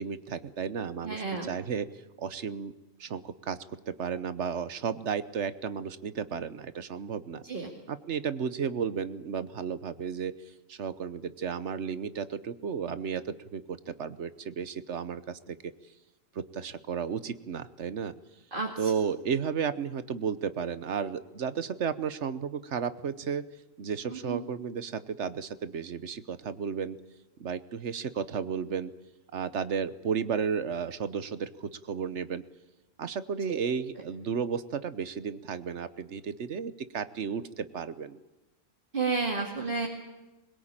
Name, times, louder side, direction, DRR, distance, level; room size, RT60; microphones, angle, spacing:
voice 1, 0.0-1.9 2.2-2.7 3.0-3.6 3.9-7.4 7.9-10.3 10.7-15.7 16.3-18.1 18.8-23.4 23.8-27.0 27.4-28.9 29.3-32.4 33.0-38.2, right 6 dB, 65° right, 13 dB, 1.2 m, -33 dB
voice 2, 1.0-1.5 7.4-7.7 18.5-18.9 24.1-24.4 33.5-33.6 38.9-39.9, right 4 dB, 40° right, 0 dB, 2.5 m, -31 dB
22.0 x 21.0 x 8.9 m, 1.1 s
omnidirectional pair, 1.3 m